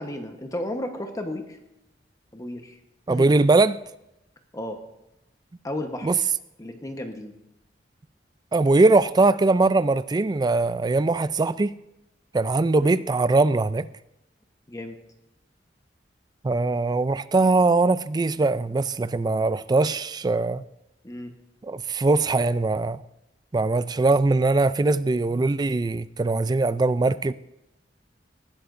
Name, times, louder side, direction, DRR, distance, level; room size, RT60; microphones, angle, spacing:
voice 1, 0.0-1.6 2.3-2.8 3.1-3.4 4.5-4.8 5.6-6.1 6.6-7.3 12.8-13.0 14.7-15.0 21.0-21.3, left 1 dB, 20° left, 1.1 m, -33 dB
voice 2, 3.1-3.8 6.0-6.2 8.5-11.8 12.3-13.9 16.4-20.6 21.6-23.0 23.5-27.3, right 3 dB, 25° right, 0.3 m, -21 dB
18.5 x 11.5 x 2.6 m
head